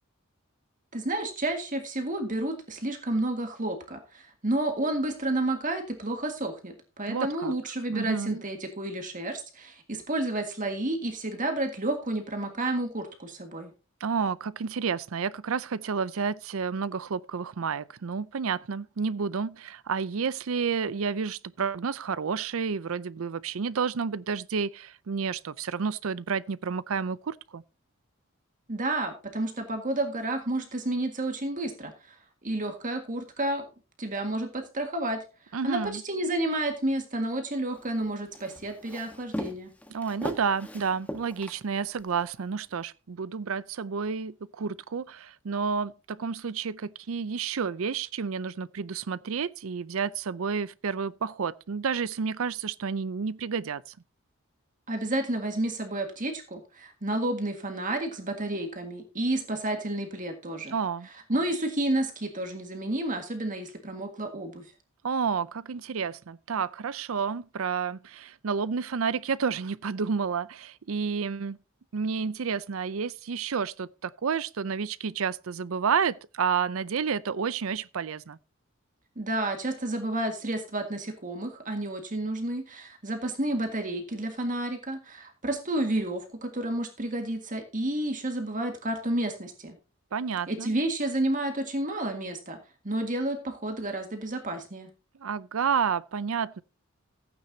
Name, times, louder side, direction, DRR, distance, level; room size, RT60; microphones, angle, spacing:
voice 1, 0.9-13.7 28.7-32.2 32.4-33.7 34.0-35.2 35.6-39.7 54.9-60.8 61.3-64.6 79.2-89.8 90.5-92.6 92.8-94.9, right 1 dB, 40° right, 1.9 m, -30 dB
voice 2, 7.1-7.5 7.9-8.4 14.0-27.6 35.5-36.0 39.9-53.8 60.7-61.1 65.0-71.6 71.9-78.4 90.1-90.7 95.2-96.6, right 6 dB, 70° right, 0.5 m, -30 dB
Walk footsteps, 37.7-42.1, equal, 5° left, 1.3 m, -39 dB
15.5 x 9.0 x 2.8 m
head